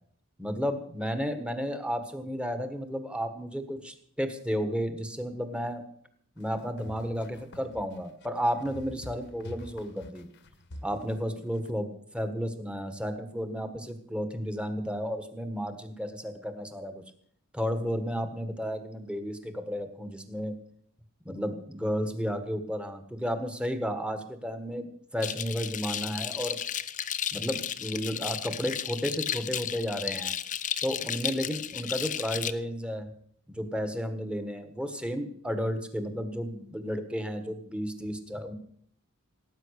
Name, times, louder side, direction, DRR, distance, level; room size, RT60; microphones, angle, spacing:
voice 1, 0.4-5.8 6.4-10.3 10.8-17.0 17.5-20.5 21.2-26.6 27.3-30.3 30.8-33.1 33.5-38.5, equal, 5° right, 8 dB, 1.5 m, -33 dB
sound 1, 6.4-11.7, left 1 dB, 55° left, 1.3 m, -46 dB
sound 2, 25.2-32.5, left 9 dB, 35° left, 0.6 m, -34 dB
18.0 x 9.3 x 6.6 m, 0.62 s
head